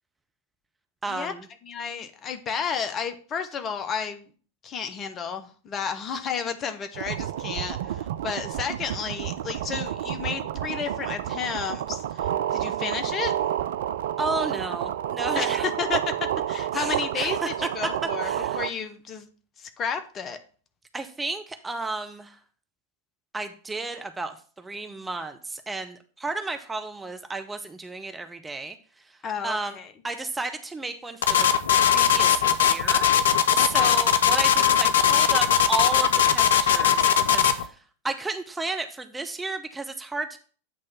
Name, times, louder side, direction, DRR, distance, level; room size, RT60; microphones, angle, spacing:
voice 1, 1.0-1.5 14.2-15.7 16.7-17.5 18.2-18.6 20.9-22.4 23.3-28.8 29.1-29.2 29.4-29.8 30.0-31.5 31.9-33.1 33.5-37.8 38.0-40.4, right 3 dB, 10° right, 7 dB, 0.6 m, -33 dB
voice 2, 1.6-4.2 4.6-13.3 15.3-18.3 18.6-19.3 19.6-20.4 29.2-29.9 33.6-33.9, left 6 dB, 25° left, 8 dB, 0.7 m, -32 dB
sound 1, 6.9-18.7, right 11 dB, 55° right, 0.3 m, -29 dB
sound 2, 31.2-37.6, left 9 dB, 65° left, 0.5 m, -20 dB
8.5 x 3.2 x 5.7 m, 0.41 s
figure-of-eight pair, 90°, 0 cm